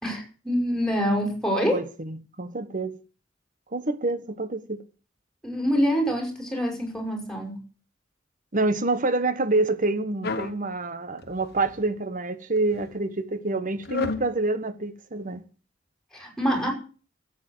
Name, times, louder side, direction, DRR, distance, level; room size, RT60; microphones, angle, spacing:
voice 1, 0.0-1.8 5.4-7.6 16.1-16.7, equal, 5° left, 5.7 m, -25 dB
voice 2, 1.7-3.0 3.7-4.8 8.5-15.4, right 2 dB, 45° right, 1.3 m, -27 dB
sound 1, 10.2-10.6 11.2-11.9 12.6-12.9 13.8-14.3, left 4 dB, 55° left, 1.4 m, -32 dB
13.5 x 8.7 x 8.0 m
head